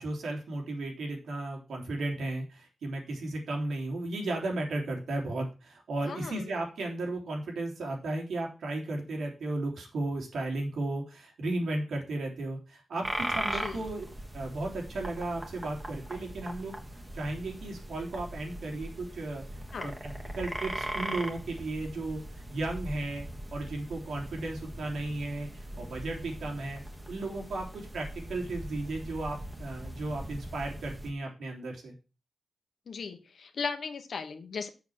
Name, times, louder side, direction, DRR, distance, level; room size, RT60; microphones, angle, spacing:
voice 1, 0.0-14.0 14.3-16.7 17.1-19.4 19.8-22.2 22.5-23.3 23.5-25.5 25.8-26.8 27.1-31.9, right 2 dB, 85° right, 0 dB, 3.3 m, -35 dB
voice 2, 6.0-6.5 13.5-13.9 19.7-20.0 32.9-34.7, left 5 dB, 60° left, 8 dB, 1.3 m, -37 dB
sound 1, 13.0-31.1, right 1 dB, 15° right, 1.5 m, -40 dB
7.2 x 6.5 x 6.2 m, 0.31 s
wide cardioid pair, 135°, 0 cm